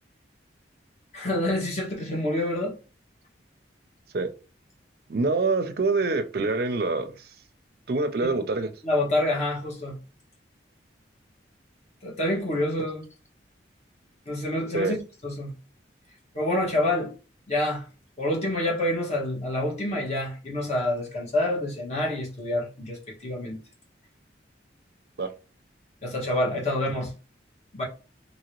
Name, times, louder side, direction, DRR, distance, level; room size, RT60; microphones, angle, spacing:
voice 1, 1.1-2.8 8.3-8.4 8.8-10.0 12.0-13.0 14.3-15.0 15.2-15.5 16.3-17.1 17.5-17.8 18.2-23.6 26.0-27.1 27.7-27.8, left 1 dB, 35° left, 1.1 m, -27 dB
voice 2, 5.1-7.4 7.9-8.7 14.7-15.0 25.2-25.3, right 3 dB, 55° right, 0.4 m, -25 dB
2.8 x 2.7 x 3.0 m
head